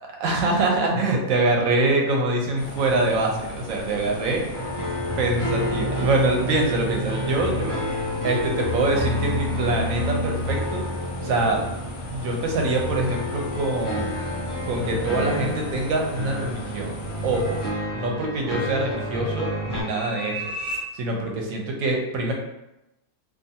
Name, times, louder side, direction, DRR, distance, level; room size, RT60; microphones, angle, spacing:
voice 1, 0.2-4.4 5.2-7.8 8.2-10.8 11.2-11.6 12.1-14.1 14.7-16.9 17.2-17.6 17.9-20.4 20.9-22.3, right 2 dB, 70° right, 0 dB, 0.9 m, -24 dB
sound 1, 2.6-17.7, equal, 60° left, 0.8 m, -37 dB
sound 2, 4.5-19.8, left 1 dB, 30° left, 0.3 m, -29 dB
sound 3, 16.6-20.8, right 1 dB, 35° right, 0.8 m, -38 dB
2.5 x 2.4 x 2.7 m, 0.92 s
omnidirectional pair, 1.6 m